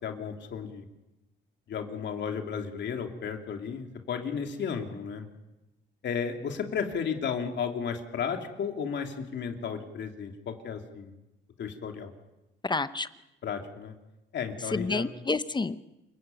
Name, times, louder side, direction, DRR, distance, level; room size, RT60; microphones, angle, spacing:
voice 1, 0.0-0.9 1.7-5.3 6.0-11.1 11.6-12.1 13.4-13.9 14.3-15.1, left 6 dB, 65° left, 4 dB, 3.0 m, -33 dB
voice 2, 12.6-13.1 14.7-15.8, left 3 dB, 20° left, 13 dB, 0.9 m, -29 dB
28.5 x 16.0 x 9.3 m, 0.96 s
cardioid pair, 90°, 20 cm